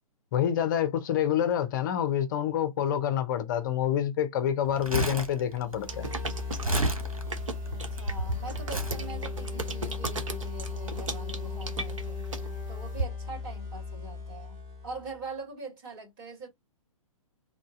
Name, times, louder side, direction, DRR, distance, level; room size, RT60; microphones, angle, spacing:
voice 1, 0.3-6.1, left 10 dB, 35° left, 0.8 m, -27 dB
Crumpling crinkling, 4.7-8.0 8.7-9.0 9.8-9.9, right 1 dB, 90° right, 1.3 m, -31 dB
sound 1, 5.7-15.2, left 4 dB, 20° right, 1.9 m, -37 dB
sound 2, 5.8-13.0, right 3 dB, 65° right, 1.0 m, -36 dB
voice 2, 7.7-14.6 14.8-16.5, right 3 dB, 40° right, 2.5 m, -43 dB
3.7 x 2.6 x 3.7 m
figure-of-eight pair, 120°, 18 cm